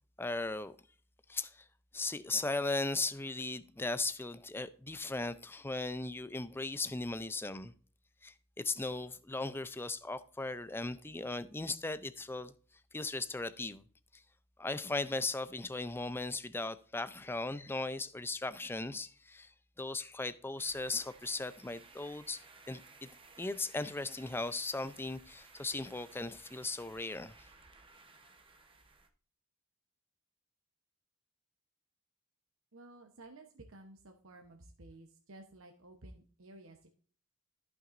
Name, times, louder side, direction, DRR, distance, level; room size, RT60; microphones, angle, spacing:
voice 1, 0.2-0.8 1.3-1.6 1.9-7.7 8.2-12.5 12.9-13.8 14.1-14.2 14.6-19.5 19.8-22.4 22.7-23.1 23.4-27.3, left 3 dB, 10° left, 0.4 m, -37 dB
sound 1, 20.6-29.1, right 4 dB, 25° right, 0.9 m, -58 dB
voice 2, 32.7-36.9, right 2 dB, 65° right, 0.9 m, -54 dB
14.0 x 6.0 x 2.5 m
head